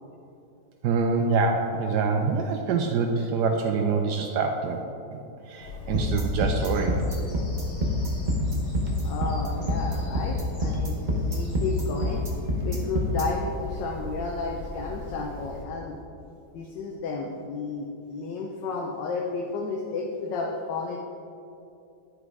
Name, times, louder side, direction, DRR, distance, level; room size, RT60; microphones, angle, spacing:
voice 1, 0.8-4.8 5.1-5.2 5.5-7.0, right 4 dB, 75° right, 4 dB, 1.1 m, -25 dB
Bird vocalization bird call bird song, 5.6-15.6, left 2 dB, 55° left, 1.8 m, -39 dB
sound 1, 5.9-13.2, equal, 35° right, 0.9 m, -27 dB
voice 2, 9.0-12.2 12.6-16.0 16.5-21.0, left 4 dB, 80° left, 0 dB, 1.4 m, -32 dB
11.0 x 4.9 x 4.7 m, 2.7 s
omnidirectional pair, 1.9 m